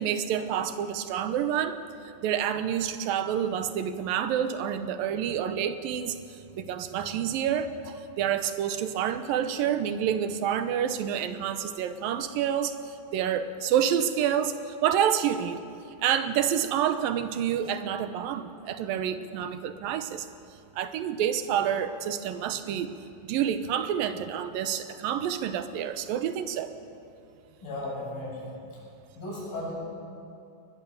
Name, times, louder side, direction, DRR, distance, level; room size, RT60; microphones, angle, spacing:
voice 1, 0.0-1.8 2.2-6.2 6.5-12.8 13.1-15.6 16.0-20.3 20.8-22.9 23.2-26.7, right 9 dB, 85° right, 10 dB, 2.7 m, -28 dB
voice 2, 27.6-28.5 29.2-29.8, left 1 dB, 70° left, -4 dB, 9.1 m, -35 dB
21.5 x 20.5 x 7.2 m, 2.6 s
omnidirectional pair, 4.0 m